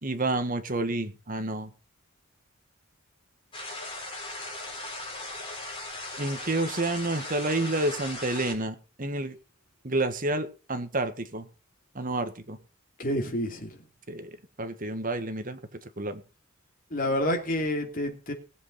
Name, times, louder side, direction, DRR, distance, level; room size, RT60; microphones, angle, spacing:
voice 1, 0.0-1.7 6.2-9.3 9.8-11.5 11.9-12.6 14.1-14.3 14.6-16.2, right 2 dB, 40° right, 1.5 m, -29 dB
sound 1, 3.5-8.5, left 2 dB, 25° left, 4.6 m, -38 dB
voice 2, 13.0-13.7 16.9-18.3, left 1 dB, 40° left, 2.9 m, -28 dB
19.5 x 8.0 x 4.3 m
head